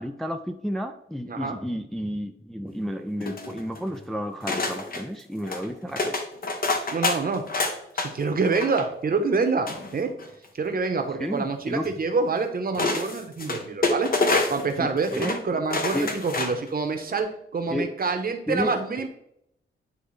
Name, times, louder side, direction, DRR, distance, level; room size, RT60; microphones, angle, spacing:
voice 1, 0.0-6.2 11.2-11.9 14.8-15.6 15.9-16.1 17.7-17.9 18.5-19.1, equal, ahead, 5 dB, 0.4 m, -31 dB
voice 2, 1.3-1.6 6.9-7.4 7.9-9.7 9.9-10.1 10.5-14.1 14.5-17.3 17.5-19.1, right 4 dB, 45° right, 6 dB, 0.9 m, -26 dB
sound 1, 3.2-3.9 4.5-5.0 5.4-5.7 6.0-8.1 8.4-8.8 9.7-10.4 11.8-11.9 12.7-14.7 15.0-15.4 15.7-16.7 17.1-17.2, left 3 dB, 45° left, 0.9 m, -27 dB
9.6 x 3.2 x 3.2 m, 0.75 s
cardioid pair, 90°, 20 cm